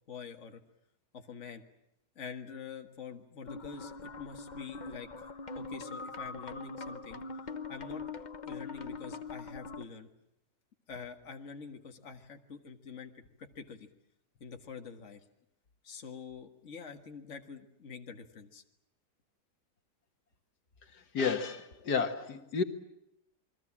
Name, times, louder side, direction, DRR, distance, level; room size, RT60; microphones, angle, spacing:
voice 1, 0.1-0.6 1.1-1.6 2.2-5.3 5.5-7.2 7.7-8.0 8.4-10.1 10.9-13.9 14.4-15.2 15.8-18.6, left 6 dB, 50° left, 5 dB, 2.0 m, -46 dB
sound 1, 3.5-9.8, left 3 dB, 35° left, 1.0 m, -42 dB
voice 2, 20.9-22.6, left 5 dB, 80° left, 7 dB, 2.1 m, -32 dB
28.5 x 22.0 x 7.4 m, 0.82 s
omnidirectional pair, 1.7 m